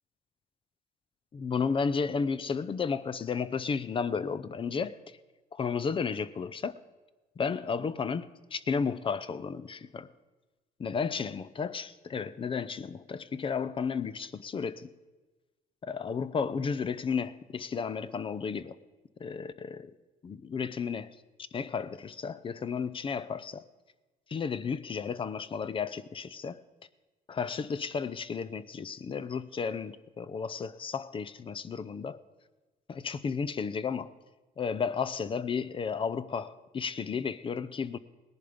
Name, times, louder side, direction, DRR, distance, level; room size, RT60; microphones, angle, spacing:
voice 1, 1.3-5.2 5.5-6.7 7.4-8.2 8.5-10.1 10.8-14.9 15.8-18.8 19.2-19.9 20.2-21.2 21.5-23.7 24.3-26.6 27.3-32.2 32.9-34.1 34.6-38.0, left 5 dB, 30° left, 0.6 m, -33 dB
17.5 x 10.5 x 5.1 m
cardioid pair, 110°, 17 cm